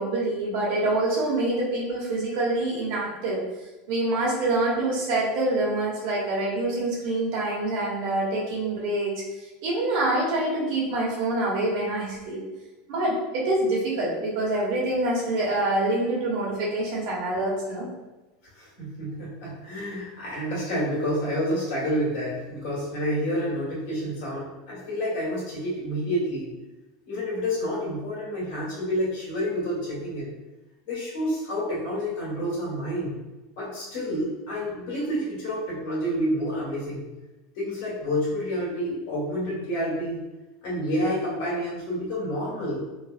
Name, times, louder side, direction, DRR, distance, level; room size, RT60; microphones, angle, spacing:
voice 1, 0.0-3.4 3.9-12.4 12.9-17.9, right 2 dB, 65° right, -4 dB, 1.0 m, -26 dB
voice 2, 18.5-26.5 27.0-30.3 30.8-33.2 33.6-37.1 37.5-40.2 40.6-42.8, equal, 70° left, -6 dB, 1.5 m, -29 dB
3.1 x 2.1 x 2.4 m, 1.1 s
supercardioid pair, 150°, 0 cm